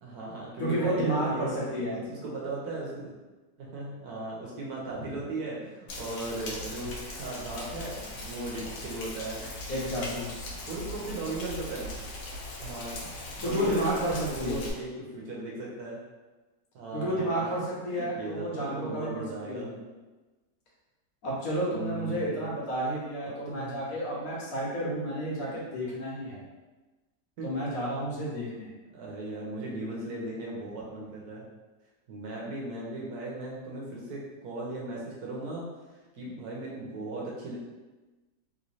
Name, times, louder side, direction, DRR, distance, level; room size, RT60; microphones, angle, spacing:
voice 1, 0.0-1.5 1.8-3.1 3.6-9.5 10.7-11.9 12.6-16.0 16.7-17.5 17.9-19.7 21.7-22.5 23.2-23.9 24.9-25.0 25.4-25.5 27.4-27.5 28.9-31.5 32.1-35.7 36.1-37.6, right 2 dB, 75° right, -4 dB, 1.2 m, -37 dB
voice 2, 0.6-2.0 4.9-5.1 9.7-10.5 13.4-14.6 16.9-19.7 21.2-26.4 27.4-28.7, right 1 dB, 65° left, -5 dB, 1.3 m, -31 dB
Rain, 5.9-14.7, left 1 dB, 85° left, 1.2 m, -39 dB
3.1 x 3.1 x 2.6 m, 1.2 s
omnidirectional pair, 1.7 m